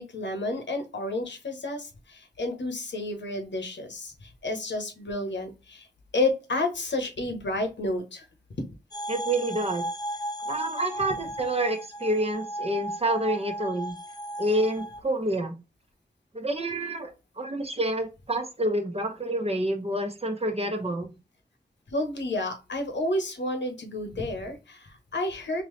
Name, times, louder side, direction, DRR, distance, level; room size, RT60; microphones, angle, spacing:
voice 1, 0.0-5.9 6.1-8.2 21.9-25.6, left 2 dB, 80° left, 5 dB, 1.1 m, -30 dB
sound 1, 8.9-15.0, right 1 dB, 20° left, 0.6 m, -35 dB
voice 2, 9.1-9.8 10.5-13.9 14.4-15.5 16.3-17.1 17.4-21.1, right 1 dB, 35° right, 4 dB, 0.9 m, -28 dB
3.7 x 2.8 x 3.2 m, 0.28 s
cardioid pair, 50°, 18 cm